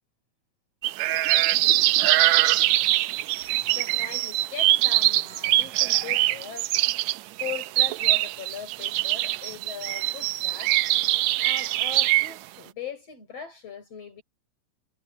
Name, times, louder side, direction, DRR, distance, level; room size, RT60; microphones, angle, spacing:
sound 1, 0.8-12.3, right 16 dB, 80° right, 1.8 m, -23 dB
voice 1, 3.7-6.7 7.4-10.8 11.4-14.2, left 7 dB, 50° left, 6.1 m, -40 dB
omnidirectional pair, 3.5 m